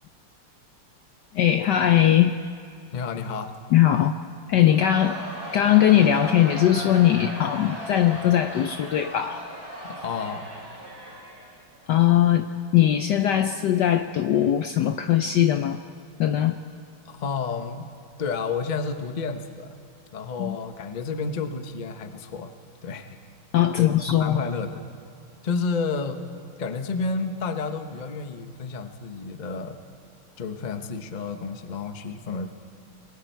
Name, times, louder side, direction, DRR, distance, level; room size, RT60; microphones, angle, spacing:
voice 1, 1.3-2.4 3.7-4.1 4.5-5.2 5.5-9.4 11.9-12.5 12.7-15.8 16.2-16.6 20.4-20.6 23.5-24.4, left 11 dB, 75° left, 8 dB, 1.0 m, -20 dB
voice 2, 2.9-3.5 9.9-10.4 17.0-17.9 18.2-19.7 20.1-22.5 22.8-23.2 23.8-24.8 25.4-26.2 26.6-29.8 30.4-32.5, left 4 dB, 45° left, 7 dB, 0.5 m, -30 dB
Crowd, 4.6-11.9, equal, 25° right, 5.6 m, -37 dB
27.5 x 21.0 x 4.5 m, 2.3 s
omnidirectional pair, 2.4 m